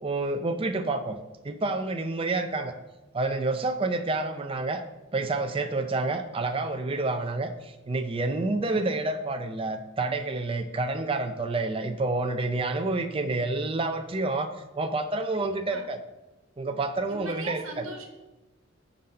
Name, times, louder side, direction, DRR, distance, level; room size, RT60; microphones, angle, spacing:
voice 1, 0.0-1.2 1.4-2.7 3.1-4.8 5.1-16.0 16.6-17.8, right 2 dB, 25° right, 7 dB, 0.4 m, -29 dB
voice 2, 15.3-15.8 17.1-18.1, right 2 dB, 75° right, 2 dB, 1.2 m, -39 dB
9.5 x 4.0 x 5.3 m, 1.0 s
head